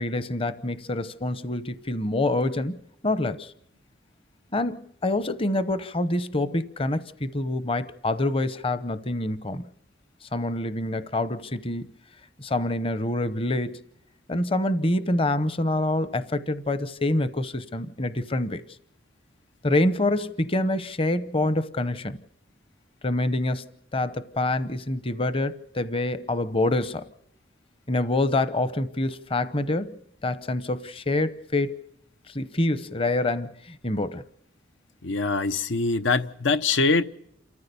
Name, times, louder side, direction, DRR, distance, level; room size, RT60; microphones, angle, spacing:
voice 1, 0.0-2.8 3.0-3.5 4.5-9.6 10.2-11.8 12.4-13.8 14.3-18.6 19.6-22.2 23.0-27.1 27.9-31.8 32.3-34.2, left 2 dB, 30° left, 0.8 m, -26 dB
voice 2, 35.0-37.0, left 3 dB, 85° left, 0.9 m, -23 dB
28.5 x 14.5 x 6.9 m
head